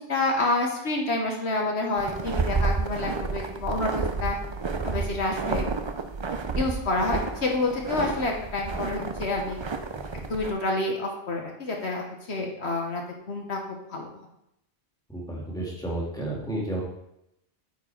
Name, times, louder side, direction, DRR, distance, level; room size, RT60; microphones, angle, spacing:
voice 1, 0.1-4.4 4.8-5.7 6.5-9.6 10.1-13.0 13.3-14.1, left 2 dB, 70° left, 1 dB, 1.5 m, -28 dB
sound 1, 2.0-10.5, right 4 dB, 40° right, 0.4 m, -31 dB
voice 2, 15.1-16.8, right 1 dB, 5° left, -3 dB, 1.8 m, -31 dB
9.0 x 4.4 x 4.5 m, 0.80 s
omnidirectional pair, 1.2 m